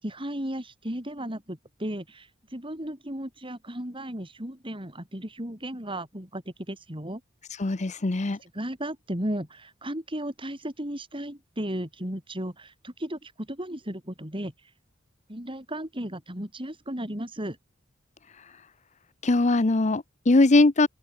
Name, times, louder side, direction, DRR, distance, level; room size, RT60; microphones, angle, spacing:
voice 1, 0.0-7.2 8.4-14.5 15.3-17.6, right 1 dB, 25° right, 7.3 m, -35 dB
voice 2, 7.6-8.4 19.2-20.9, left 2 dB, 35° left, 0.8 m, -21 dB
open air
head